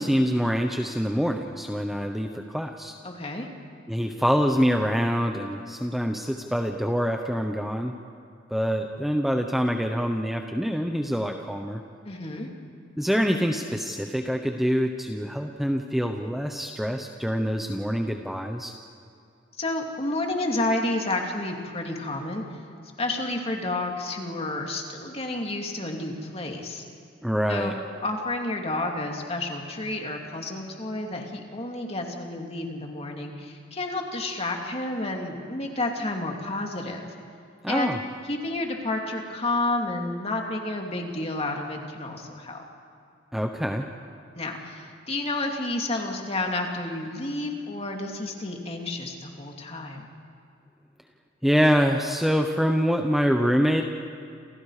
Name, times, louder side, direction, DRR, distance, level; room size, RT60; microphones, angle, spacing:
voice 1, 0.0-2.9 3.9-7.9 8.5-11.8 13.0-18.7 27.2-27.7 37.6-38.0 43.3-43.9 51.4-53.8, equal, ahead, 3 dB, 0.9 m, -25 dB
voice 2, 3.0-3.5 12.0-12.5 19.6-22.4 23.0-26.8 27.5-27.7 28.0-37.1 37.7-37.9 38.3-42.6 44.3-50.1, left 2 dB, 30° left, 2 dB, 2.8 m, -30 dB
28.5 x 28.0 x 5.0 m, 2.5 s
head